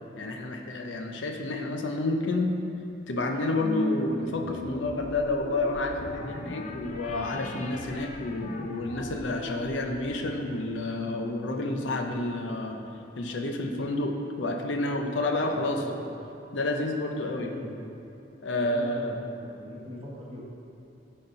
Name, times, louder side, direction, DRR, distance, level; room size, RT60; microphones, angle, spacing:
voice 1, 0.2-2.5 3.1-12.8 13.1-15.8 16.5-17.5 18.4-19.2, left 2 dB, 80° left, 3 dB, 0.7 m, -29 dB
sound 1, 3.6-12.3, left 2 dB, 40° left, 0.4 m, -38 dB
voice 2, 15.4-16.1 17.2-17.8 18.5-20.4, left 1 dB, 30° right, -5 dB, 1.3 m, -41 dB
9.7 x 4.3 x 3.8 m, 2.9 s
head